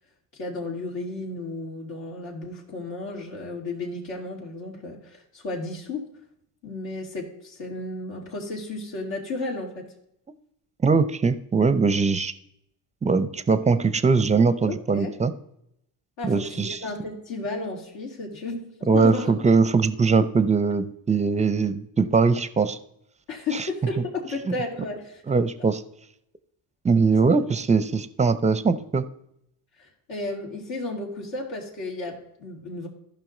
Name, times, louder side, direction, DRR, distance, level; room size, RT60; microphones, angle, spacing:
voice 1, 0.4-6.1 6.6-9.9 14.6-15.1 16.2-19.3 23.3-25.2 30.1-32.9, left 2 dB, 70° left, -2 dB, 2.8 m, -33 dB
voice 2, 10.8-12.3 13.0-15.3 16.2-16.8 18.9-22.8 23.5-23.7 25.3-25.8 26.8-29.1, right 4 dB, 15° right, 14 dB, 0.6 m, -21 dB
14.0 x 5.8 x 3.9 m, 0.77 s
supercardioid pair, 80°, 47 cm